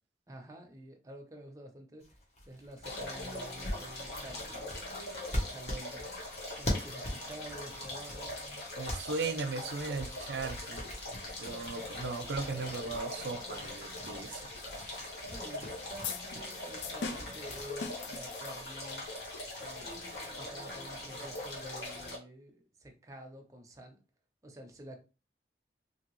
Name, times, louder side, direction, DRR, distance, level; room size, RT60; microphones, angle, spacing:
voice 1, 0.3-2.2 2.4-4.6 5.3-6.1 6.6-8.3 15.2-19.1 19.6-19.9 20.4-24.0 24.4-25.0, right 1 dB, 20° right, 0.5 m, -49 dB
sound 1, 2.0-9.4 9.8-17.6, left 1 dB, 40° left, 0.9 m, -42 dB
sound 2, 2.8-22.2, left 1 dB, 70° left, 1.2 m, -42 dB
voice 2, 8.8-10.9 11.4-14.5, right 3 dB, 85° right, 0.5 m, -37 dB
sound 3, 16.0-19.1, left 5 dB, 85° left, 0.5 m, -42 dB
2.9 x 2.7 x 3.0 m
head